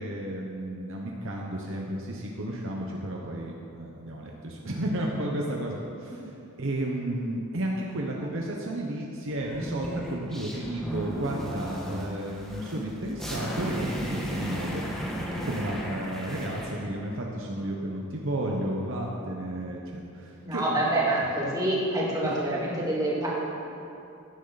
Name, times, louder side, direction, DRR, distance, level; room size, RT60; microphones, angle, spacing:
voice 1, 0.0-6.2 6.6-14.8 15.4-20.9 22.2-22.4, right 1 dB, 60° right, -1 dB, 1.1 m, -32 dB
sound 1, 9.4-16.8, equal, ahead, 1.6 m, -35 dB
voice 2, 20.4-23.3, right 1 dB, 15° right, -6 dB, 2.8 m, -26 dB
16.0 x 10.0 x 4.1 m, 2.7 s
head